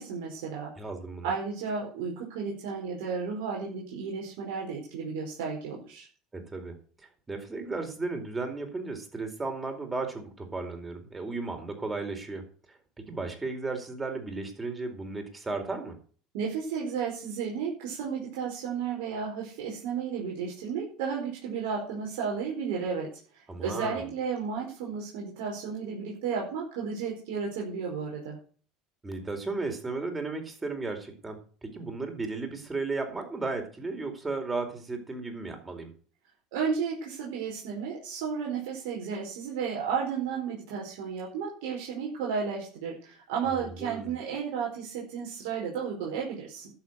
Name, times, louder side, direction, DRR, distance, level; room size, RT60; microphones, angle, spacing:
voice 1, 0.0-0.7 1.2-6.1 16.3-23.1 23.3-28.4 36.5-46.7, right 6 dB, 80° right, -2 dB, 4.7 m, -33 dB
voice 2, 0.8-1.3 6.3-15.9 23.5-24.0 29.0-35.9 43.6-44.1, right 3 dB, 20° right, 5 dB, 4.4 m, -35 dB
12.0 x 7.0 x 7.9 m, 0.42 s
supercardioid pair, 100°, 0 cm